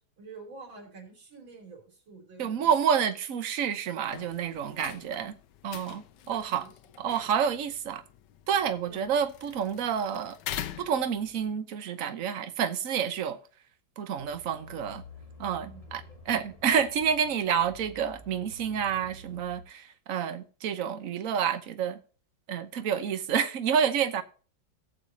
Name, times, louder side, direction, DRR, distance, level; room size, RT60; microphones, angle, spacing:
voice 1, 0.2-2.7 4.9-5.0 6.2-6.7 8.8-9.1 15.6-16.2, right 4 dB, 85° right, 4.2 m, -48 dB
voice 2, 2.4-5.4 5.6-6.6 7.0-8.0 8.5-10.4 10.8-13.4 14.0-15.0 15.4-22.0 22.5-24.2, right 7 dB, 50° right, 1.1 m, -29 dB
sound 1, 4.0-11.5, left 11 dB, 70° left, 1.2 m, -44 dB
sound 2, 14.2-19.6, left 1 dB, 20° left, 1.3 m, -49 dB
18.0 x 6.8 x 2.7 m
omnidirectional pair, 2.1 m